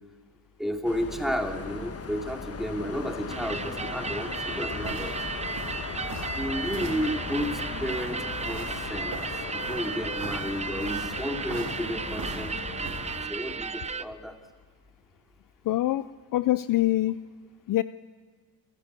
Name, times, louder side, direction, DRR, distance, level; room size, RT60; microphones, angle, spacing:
voice 1, 0.6-5.2 6.3-9.2 9.5-13.0 13.3-14.3, equal, ahead, 3 dB, 2.7 m, -32 dB
sound 1, 0.8-13.3, left 5 dB, 35° left, 1.5 m, -37 dB
sound 2, 3.3-14.0, right 4 dB, 15° right, 0.7 m, -35 dB
sound 3, 4.5-13.0, right 4 dB, 55° right, 3.8 m, -41 dB
voice 2, 15.6-17.2 17.7-17.8, left 15 dB, 50° left, 15 dB, 0.5 m, -25 dB
27.5 x 13.5 x 8.3 m, 1.5 s
cardioid pair, 95°, 41 cm